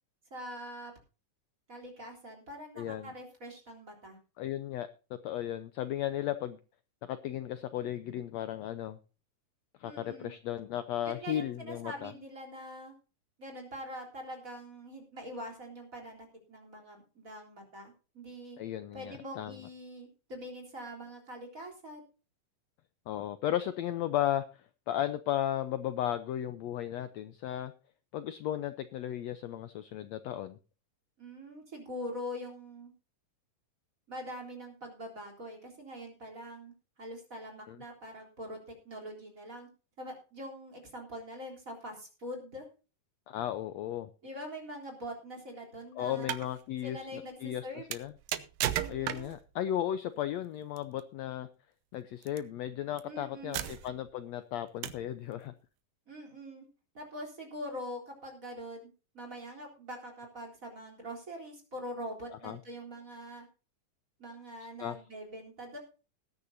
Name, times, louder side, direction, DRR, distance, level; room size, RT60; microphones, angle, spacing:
voice 1, 0.3-0.9 1.7-4.2 9.8-10.3 11.0-12.9 13.4-18.6 18.9-22.0 31.2-32.9 34.1-36.7 37.0-39.7 40.0-42.7 44.2-46.3 46.8-47.8 48.7-49.3 53.0-53.7 56.1-56.7 56.9-58.9 59.1-63.5 64.2-65.8, equal, 25° right, 1 dB, 3.8 m, -44 dB
voice 2, 2.8-3.1 4.4-6.6 7.0-9.0 9.8-12.1 18.6-19.6 23.1-27.7 28.1-30.6 37.7-37.8 43.3-44.1 46.0-47.6 47.9-48.1 48.9-51.5 51.9-55.5 62.4-62.6 64.8-65.0, left 11 dB, 80° left, 11 dB, 1.6 m, -35 dB
sound 1, 46.1-46.5 47.9-49.5 50.8-51.0 52.2-52.4 53.0-53.1 53.5-54.1 54.8-55.1, right 12 dB, 85° right, 2.6 m, -35 dB
20.0 x 9.7 x 2.7 m, 0.34 s
omnidirectional pair, 3.9 m